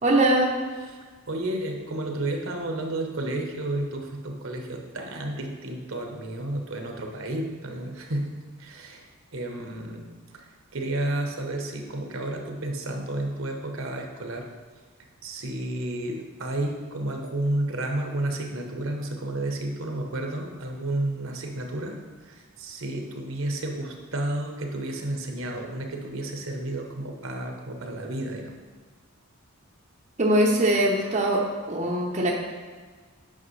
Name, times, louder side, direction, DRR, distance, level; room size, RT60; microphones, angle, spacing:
voice 1, 0.0-0.5 30.2-32.3, right 1 dB, 30° right, -3 dB, 0.7 m, -22 dB
voice 2, 1.3-8.3 8.6-9.1 9.3-10.1 10.3-10.4 10.7-14.5 15.2-28.6, right 1 dB, 60° right, 2 dB, 0.9 m, -31 dB
8.6 x 5.9 x 3.2 m, 1.5 s
head